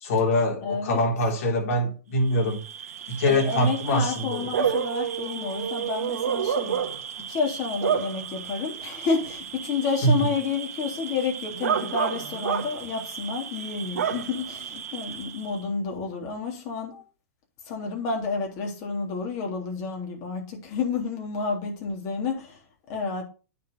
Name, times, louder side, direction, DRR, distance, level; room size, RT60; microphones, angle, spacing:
voice 1, 0.0-2.6 3.1-4.4 10.0-10.1, left 1 dB, 65° left, 3.6 m, -23 dB
voice 2, 0.6-1.0 3.3-6.8 7.3-17.0 17.7-22.6 22.9-23.2, left 5 dB, 45° left, 3.3 m, -30 dB
Bark / Cricket, 2.3-15.6, right 8 dB, 85° right, 1.4 m, -31 dB
9.2 x 4.8 x 5.5 m
hypercardioid pair, 130°, 8 cm